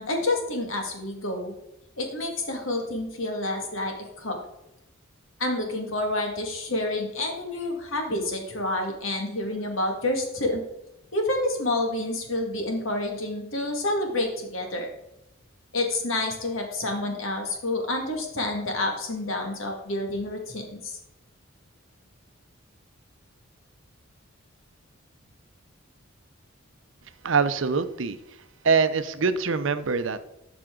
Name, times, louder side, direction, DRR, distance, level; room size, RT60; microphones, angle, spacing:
voice 1, 0.0-1.5 2.0-4.4 5.4-10.6 11.1-14.9 15.7-21.0, left 2 dB, 75° left, 3 dB, 2.1 m, -28 dB
voice 2, 27.2-28.2 28.6-30.2, right 5 dB, 65° right, 11 dB, 0.7 m, -24 dB
12.0 x 6.0 x 3.8 m, 0.87 s
head